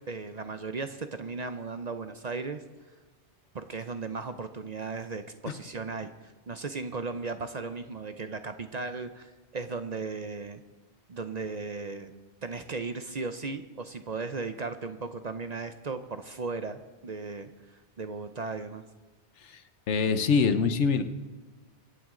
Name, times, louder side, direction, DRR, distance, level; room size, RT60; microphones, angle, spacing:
voice 1, 0.1-2.6 3.5-6.1 6.5-10.6 11.1-12.1 12.4-17.5 18.0-18.8, right 4 dB, 45° right, 9 dB, 0.6 m, -36 dB
voice 2, 19.9-21.0, left 5 dB, 85° left, 10 dB, 1.2 m, -24 dB
24.0 x 9.1 x 3.8 m, 1.3 s
omnidirectional pair, 1.2 m